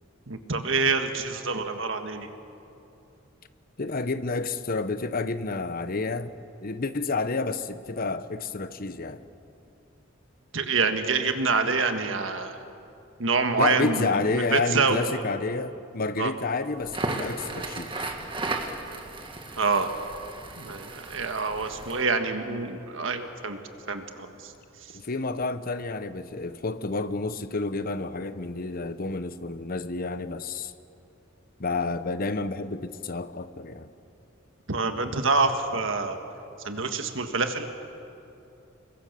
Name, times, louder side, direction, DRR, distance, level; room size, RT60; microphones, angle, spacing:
voice 1, 0.3-2.3 10.5-12.6 13.2-14.1 14.3-15.0 16.2-16.3 19.6-19.9 20.6-23.6 23.9-24.3 34.7-36.2 36.7-37.7, right 4 dB, 70° right, 1.7 m, -26 dB
voice 2, 3.8-6.3 6.6-9.2 13.6-18.1 24.9-30.7 31.6-33.9, left 3 dB, 45° left, 0.9 m, -30 dB
Crackle, 16.8-22.0, right 2 dB, 25° right, 1.8 m, -35 dB
28.5 x 22.5 x 6.8 m
head